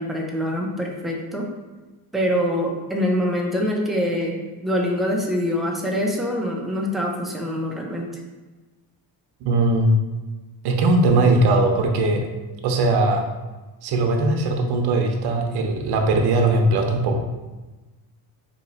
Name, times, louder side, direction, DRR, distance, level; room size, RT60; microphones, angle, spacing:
voice 1, 0.0-1.5 2.1-8.1, equal, ahead, 0 dB, 0.4 m, -24 dB
voice 2, 9.4-9.9 10.6-12.2 12.6-13.2 13.8-17.2, right 2 dB, 65° right, 3 dB, 0.7 m, -19 dB
3.0 x 2.8 x 4.0 m, 1.2 s
cardioid pair, 125°, 43 cm